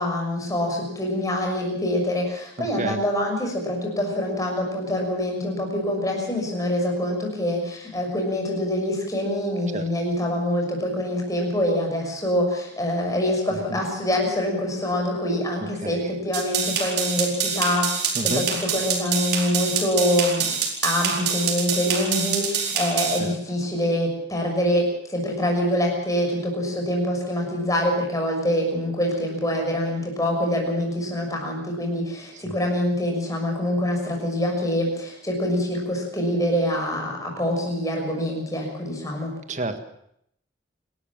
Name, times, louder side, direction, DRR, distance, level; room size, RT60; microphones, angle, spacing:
voice 1, 0.0-20.5 20.8-39.3, left 1 dB, 20° left, 1 dB, 6.3 m, -25 dB
voice 2, 2.6-3.0 9.7-9.8 13.5-13.8 15.8-16.0 18.1-18.4 23.2-23.3 32.4-32.6 39.5-39.8, right 1 dB, 40° right, 8 dB, 1.7 m, -30 dB
sound 1, 16.3-23.2, right 6 dB, 55° right, 4.5 m, -26 dB
29.0 x 13.0 x 7.4 m, 0.73 s
head